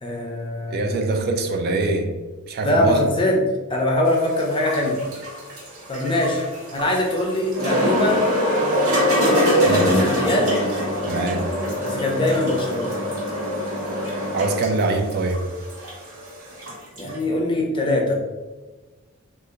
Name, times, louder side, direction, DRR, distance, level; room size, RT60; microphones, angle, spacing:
voice 1, 0.0-1.2 2.6-3.4 3.7-5.0 5.9-6.4 6.7-8.2 9.7-10.6 11.8-12.9 17.0-18.2, left 1 dB, 25° left, 0.6 m, -22 dB
voice 2, 0.7-2.1 2.5-3.0 9.6-9.9 11.1-11.5 14.3-15.5, right 3 dB, 50° right, 0.3 m, -23 dB
sound 1, 4.1-17.2, equal, 85° right, 1.2 m, -24 dB
2.7 x 2.5 x 3.7 m
head